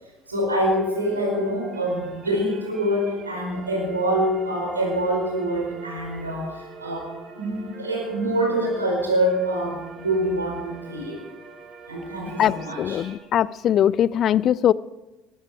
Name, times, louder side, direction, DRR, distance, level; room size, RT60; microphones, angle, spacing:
voice 1, 0.3-7.1 7.3-11.2 11.9-13.0, right 1 dB, 90° right, 0 dB, 4.7 m, -25 dB
sound 1, 0.7-13.2, right 3 dB, 40° right, 4.2 m, -44 dB
voice 2, 12.4-14.7, left 10 dB, 45° left, 22 dB, 0.4 m, -21 dB
20.0 x 13.0 x 4.9 m, 1.0 s
figure-of-eight pair, 60°, 0 cm